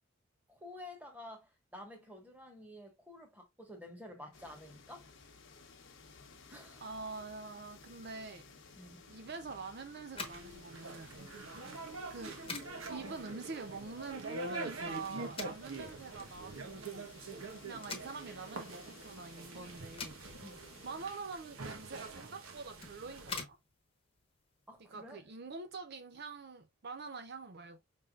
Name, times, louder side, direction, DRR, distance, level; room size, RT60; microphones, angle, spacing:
voice 1, 0.5-5.1 6.5-6.9 8.7-9.1 12.8-13.0 20.4-20.7 24.7-25.3, left 1 dB, 10° right, 1.3 m, -51 dB
sound 1, 4.3-21.2, left 4 dB, 60° left, 1.0 m, -57 dB
voice 2, 6.8-8.5 9.1-11.3 12.1-12.4 12.9-17.2 17.6-20.2 20.8-23.6 24.9-27.8, right 4 dB, 50° right, 0.5 m, -45 dB
sound 2, 10.0-25.0, left 5 dB, 25° left, 1.0 m, -49 dB
sound 3, 10.1-23.4, right 3 dB, 80° right, 1.1 m, -45 dB
5.5 x 3.6 x 2.4 m
head